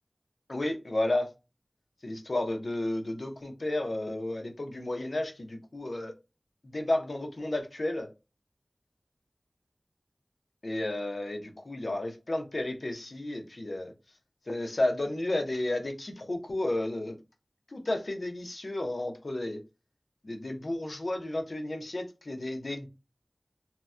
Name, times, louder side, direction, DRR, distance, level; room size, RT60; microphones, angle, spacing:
voice 1, 0.5-1.3 2.0-6.1 6.6-8.1 10.6-13.9 14.5-17.2 17.7-19.6 20.2-22.9, left 1 dB, 65° left, 4 dB, 0.7 m, -32 dB
2.9 x 2.1 x 3.5 m, 0.27 s
wide cardioid pair, 55°, 0 cm